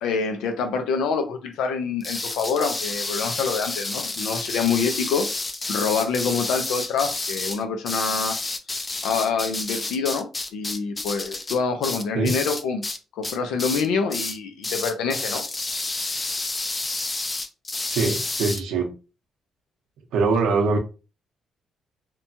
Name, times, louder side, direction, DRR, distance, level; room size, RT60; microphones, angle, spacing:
voice 1, 0.0-5.3 5.7-8.4 9.0-12.8 13.1-15.4, left 5 dB, 90° left, 0.5 m, -26 dB
sound 1, 2.0-13.0 13.2-13.9 14.1-14.4 14.6-18.6, left 2 dB, 25° left, 0.4 m, -30 dB
voice 2, 17.9-18.9 20.1-20.8, right 4 dB, 80° right, 0.7 m, -22 dB
2.8 x 2.2 x 2.7 m
cardioid pair, 90°, 0 cm